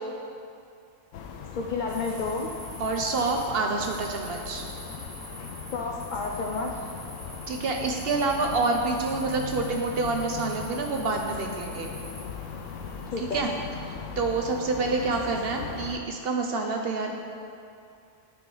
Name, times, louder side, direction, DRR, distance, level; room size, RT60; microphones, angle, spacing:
sound 1, 1.1-16.0, left 6 dB, 70° left, 0.9 m, -39 dB
voice 1, 1.5-2.5 5.7-6.8 13.1-13.4, left 4 dB, 90° left, 1 dB, 0.4 m, -31 dB
sound 2, 1.9-13.1, right 1 dB, 30° right, 1.8 m, -46 dB
voice 2, 2.8-4.7 7.5-11.9 13.2-13.5 14.2-17.1, right 3 dB, 60° right, 2 dB, 0.6 m, -27 dB
9.4 x 4.8 x 3.8 m, 2.5 s
omnidirectional pair, 1.4 m